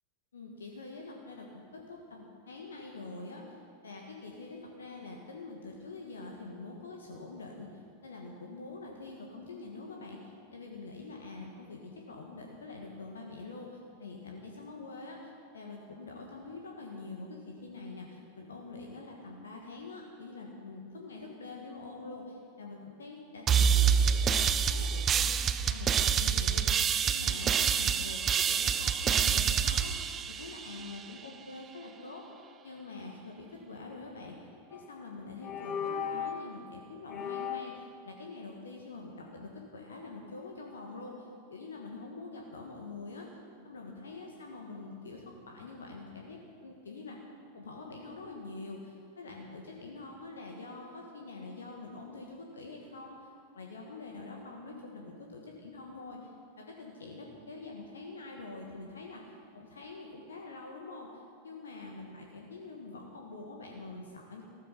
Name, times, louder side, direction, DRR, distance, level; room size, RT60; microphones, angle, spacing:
voice 1, 0.3-3.6 3.8-26.6 27.0-32.3 32.6-34.3 34.7-47.2 47.5-53.3 53.5-56.3 56.6-59.2 59.5-64.4, left 3 dB, 70° left, 0 dB, 1.5 m, -45 dB
sound 1, 23.5-31.0, right 7 dB, 25° right, 0.6 m, -27 dB
sound 2, 34.7-35.0 35.4-36.5 37.1-37.9, left 7 dB, 30° left, 0.9 m, -36 dB
15.0 x 13.0 x 5.6 m, 2.3 s
figure-of-eight pair, 90°, 0 cm